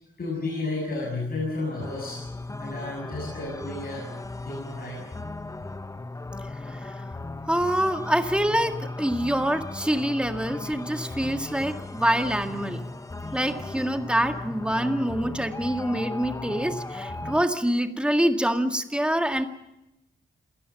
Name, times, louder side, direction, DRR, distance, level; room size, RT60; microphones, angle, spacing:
voice 1, 0.2-2.2 2.6-4.1 4.4-5.1, left 2 dB, 50° left, -2 dB, 6.9 m, -32 dB
sound 1, 1.8-17.5, left 2 dB, 15° left, 0.8 m, -36 dB
voice 2, 7.5-12.8 13.3-19.4, equal, 5° right, 6 dB, 1.9 m, -25 dB
27.5 x 18.0 x 7.0 m, 0.92 s
wide cardioid pair, 130°, 20 cm